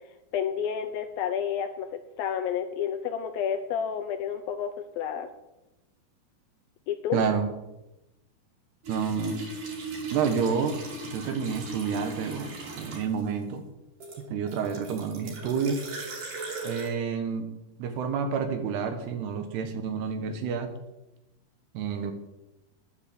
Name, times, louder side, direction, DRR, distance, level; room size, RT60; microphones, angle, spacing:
voice 1, 0.3-4.7 5.0-5.3 6.9-7.2, left 8 dB, 80° left, 8 dB, 2.2 m, -30 dB
voice 2, 7.1-7.5 8.9-9.6 10.1-13.6 14.3-15.8 16.6-17.5 17.8-20.7 21.7-22.1, right 6 dB, 75° right, 7 dB, 3.2 m, -29 dB
sound 1, 8.8-13.3 14.0-16.9, right 3 dB, 50° right, 4.1 m, -38 dB
11.0 x 9.7 x 7.7 m, 0.97 s
omnidirectional pair, 4.9 m